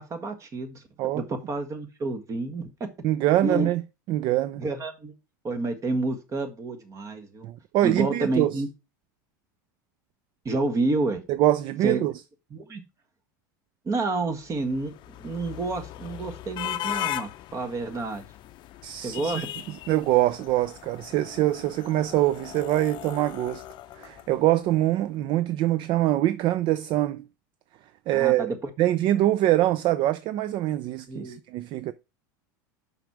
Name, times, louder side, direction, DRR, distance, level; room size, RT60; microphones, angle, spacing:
voice 1, 0.0-0.8 1.1-2.7 3.4-3.7 4.6-5.1 5.4-7.5 7.8-8.7 10.4-11.2 11.8-12.0 12.5-12.8 13.8-14.9 15.2-18.2 19.0-19.5 28.1-29.1 31.1-31.4, right 2 dB, 30° right, 1.6 m, -29 dB
voice 2, 3.0-3.8 4.1-4.6 7.4-8.5 11.4-12.1 18.8-19.4 19.9-23.6 24.0-27.2 28.1-28.5 28.8-31.9, right 14 dB, 50° right, 0.5 m, -24 dB
sound 1, 14.5-24.8, left 14 dB, 45° left, 0.5 m, -38 dB
5.8 x 5.3 x 4.7 m
hypercardioid pair, 100°, 11 cm